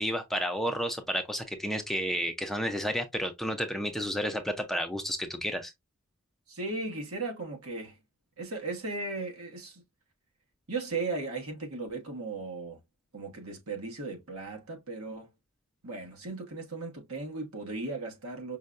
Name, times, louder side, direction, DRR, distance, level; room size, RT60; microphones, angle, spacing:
voice 1, 0.0-5.7, equal, ahead, 0.4 m, -31 dB
voice 2, 6.5-8.0 8.4-9.8 10.7-12.8 13.1-15.3 15.8-18.6, right 3 dB, 85° right, 1.2 m, -36 dB
5.4 x 2.2 x 2.4 m
head